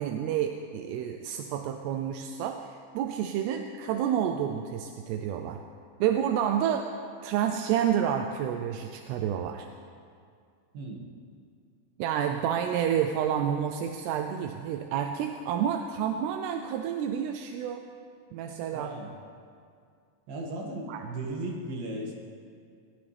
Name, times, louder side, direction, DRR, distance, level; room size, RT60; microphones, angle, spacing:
voice 1, 0.0-5.6 6.0-6.9 7.2-9.7 12.0-17.8 18.3-18.9 20.9-21.1, right 9 dB, 85° right, 5 dB, 2.7 m, -29 dB
voice 2, 10.7-11.0 18.7-19.1 20.3-22.1, right 2 dB, 65° right, -1 dB, 3.7 m, -36 dB
22.0 x 19.0 x 3.5 m, 2.3 s
omnidirectional pair, 4.7 m